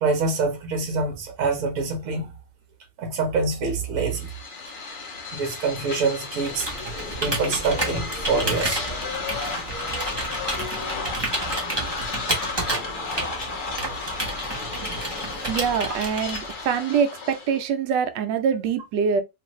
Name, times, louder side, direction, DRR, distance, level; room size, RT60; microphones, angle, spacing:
voice 1, 0.0-2.4 3.0-4.3 5.3-6.7 7.2-8.8, right 4 dB, 55° right, 1.3 m, -25 dB
sound 1, 4.1-17.7, left 4 dB, 65° left, 0.5 m, -33 dB
Computer keyboard, 6.4-16.7, right 2 dB, 25° right, 0.6 m, -31 dB
voice 2, 15.5-19.2, right 7 dB, 80° right, 1.2 m, -24 dB
3.1 x 2.5 x 3.0 m
omnidirectional pair, 1.9 m